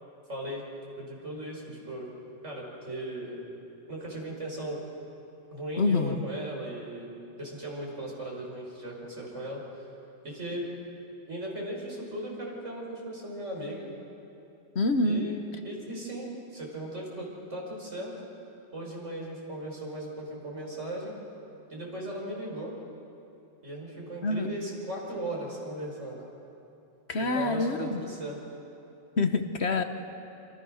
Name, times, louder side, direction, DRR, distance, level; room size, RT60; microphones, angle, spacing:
voice 1, 0.3-0.6 1.0-2.1 2.4-3.4 3.9-4.8 5.5-7.1 7.4-9.6 10.2-10.6 11.3-13.9 15.0-15.4 15.6-18.1 18.7-21.2 21.7-22.7 23.6-26.3 27.2-28.4, right 1 dB, 80° right, -2 dB, 6.3 m, -37 dB
voice 2, 5.8-6.2 14.7-15.3 24.2-24.5 27.1-28.0 29.2-29.8, left 3 dB, 60° left, 7 dB, 1.6 m, -26 dB
27.5 x 26.0 x 6.6 m, 2.9 s
omnidirectional pair, 1.2 m